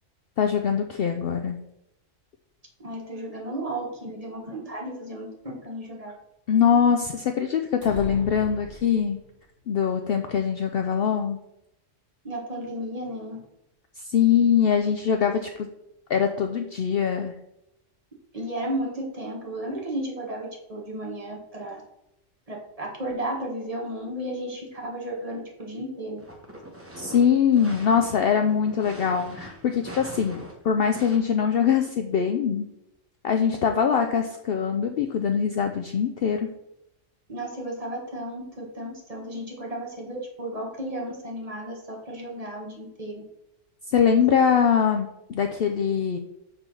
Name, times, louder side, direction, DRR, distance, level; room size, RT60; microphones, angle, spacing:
voice 1, 0.4-1.6 6.5-9.2 9.7-11.4 14.0-15.7 16.1-17.3 27.0-32.7 33.2-36.5 43.9-46.2, left 7 dB, 60° left, 5 dB, 0.7 m, -23 dB
voice 2, 2.8-6.1 12.2-13.4 18.3-21.8 22.5-26.2 37.3-43.2, right 1 dB, 30° right, -1 dB, 1.5 m, -34 dB
sound 1, 7.8-9.4, equal, 60° right, 1.8 m, -39 dB
sound 2, 26.2-31.2, equal, 10° right, 1.0 m, -42 dB
6.6 x 3.7 x 5.9 m, 0.85 s
omnidirectional pair, 1.3 m